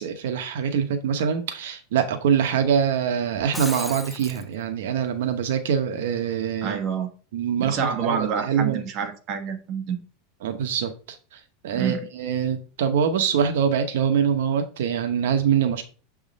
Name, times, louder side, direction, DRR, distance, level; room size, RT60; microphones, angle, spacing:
voice 1, 0.0-6.8 7.3-8.8 10.4-15.8, right 7 dB, 80° right, 0.8 m, -24 dB
Shatter, 3.3-4.4, left 1 dB, ahead, 0.4 m, -35 dB
voice 2, 6.6-7.1 7.6-10.0 11.7-12.0, right 7 dB, 40° right, 1.2 m, -27 dB
7.3 x 3.6 x 3.9 m
supercardioid pair, 155°, 0 cm